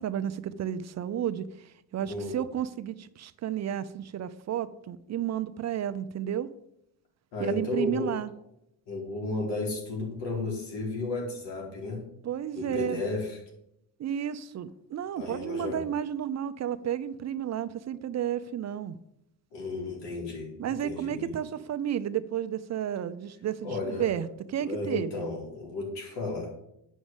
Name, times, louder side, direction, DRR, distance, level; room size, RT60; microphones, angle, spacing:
voice 1, 0.0-6.5 7.4-8.3 12.2-13.0 14.0-19.0 20.6-25.3, right 10 dB, 40° right, 12 dB, 0.6 m, -32 dB
voice 2, 2.0-2.4 7.3-8.1 8.9-12.0 12.5-13.4 15.1-15.8 19.5-21.3 23.6-24.1 24.6-26.5, left 2 dB, 80° left, -1 dB, 4.7 m, -33 dB
9.3 x 6.3 x 7.2 m, 0.80 s
cardioid pair, 145°, 41 cm